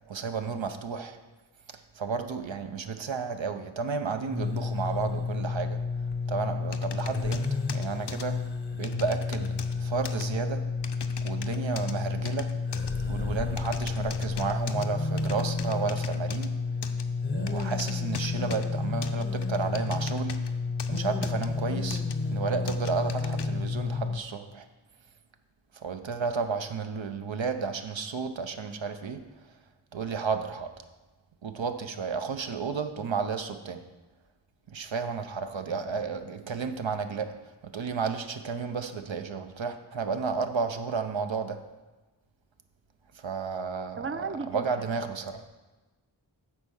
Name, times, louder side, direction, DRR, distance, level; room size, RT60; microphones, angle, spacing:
voice 1, 0.1-1.2 1.9-5.8 6.3-8.5 8.7-10.6 11.2-12.6 13.1-16.5 17.3-20.4 20.9-22.0 22.3-24.7 25.7-29.2 29.9-30.7 31.4-33.8 34.7-37.4 37.6-41.6 43.2-45.4, right 5 dB, 75° right, 8 dB, 0.7 m, -32 dB
sound 1, 4.3-24.2, left 4 dB, 25° left, 0.6 m, -31 dB
sound 2, 6.7-8.3 8.8-9.8 10.0-10.2 10.8-11.9 12.2-12.9 13.6-14.9 15.2-16.5 16.8-17.0 17.5-18.7 19.0-20.5 20.8-21.5 21.9-22.1 22.7-23.5, left 7 dB, 65° left, 0.6 m, -40 dB
voice 2, 44.0-44.9, right 5 dB, 30° right, 11 dB, 0.5 m, -35 dB
8.8 x 4.4 x 6.3 m, 1.2 s
wide cardioid pair, 40°, 46 cm